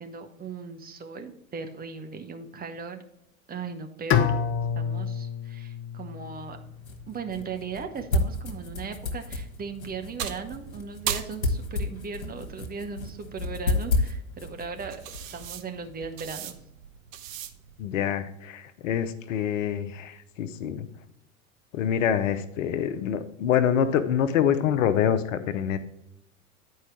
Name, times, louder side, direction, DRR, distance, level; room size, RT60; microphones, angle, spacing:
voice 1, 0.0-3.0 3.5-4.4 4.7-6.6 7.1-15.0 15.3-16.6, right 5 dB, 20° right, 6 dB, 0.9 m, -37 dB
Bowed string instrument, 4.1-7.1, left 8 dB, 30° left, 0.6 m, -28 dB
sound 1, 6.3-16.2, left 2 dB, 85° left, 1.2 m, -32 dB
sound 2, 8.7-17.8, right 10 dB, 70° right, 0.8 m, -40 dB
voice 2, 17.8-20.9 21.7-25.8, left 9 dB, 65° left, 12 dB, 0.8 m, -26 dB
9.6 x 4.7 x 4.6 m, 0.81 s
figure-of-eight pair, 80°, 41 cm